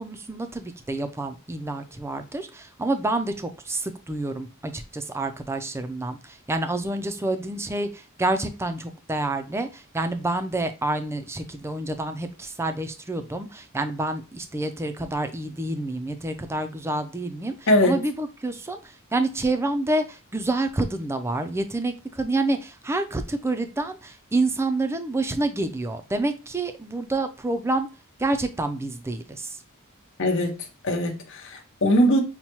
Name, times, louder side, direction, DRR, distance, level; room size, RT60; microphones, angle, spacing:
voice 1, 0.0-27.9 28.2-29.6, right 2 dB, 10° right, 0.4 m, -28 dB
voice 2, 17.7-18.0 30.2-30.6 30.8-32.2, equal, 60° left, 0.8 m, -21 dB
5.5 x 2.2 x 2.9 m
head